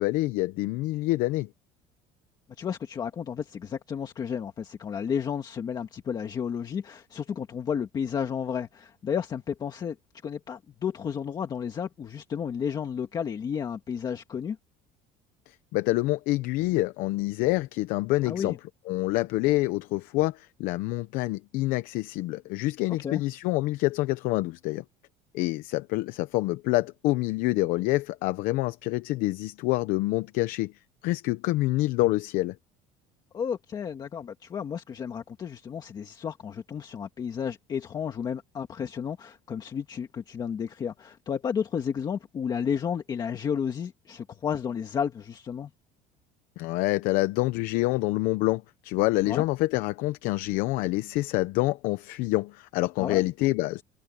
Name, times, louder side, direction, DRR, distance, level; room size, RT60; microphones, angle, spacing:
voice 1, 0.0-1.5 15.5-18.5 18.9-24.8 25.3-30.7 31.0-32.6 46.6-53.8, left 19 dB, 60° left, 0.8 m, -27 dB
voice 2, 2.6-10.0 10.2-14.6 18.2-18.6 23.0-23.2 33.3-45.7 49.2-49.4 53.0-53.2, left 7 dB, 25° left, 1.7 m, -32 dB
cardioid pair, 180°, 16 cm